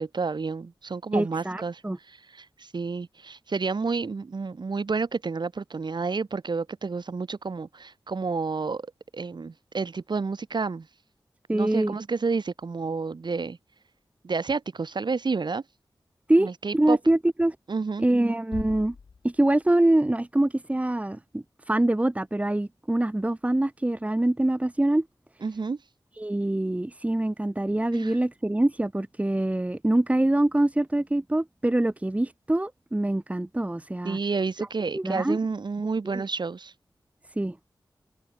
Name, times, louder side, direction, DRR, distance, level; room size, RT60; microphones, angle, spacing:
voice 1, 0.0-1.8 2.1-8.9 9.1-10.9 11.5-13.6 14.2-15.6 16.4-17.0 17.7-18.1 25.4-25.8 27.9-28.2 34.0-36.7, right 4 dB, 65° right, 4.3 m, -30 dB
voice 2, 1.1-2.0 11.5-11.9 16.3-17.6 18.0-19.0 19.2-25.1 26.2-34.2 34.9-35.4 36.1-36.2 37.4-37.6, right 1 dB, 15° right, 1.7 m, -24 dB
sound 1, 18.5-20.4, left 5 dB, 85° left, 2.9 m, -43 dB
wide cardioid pair, 100°, 8 cm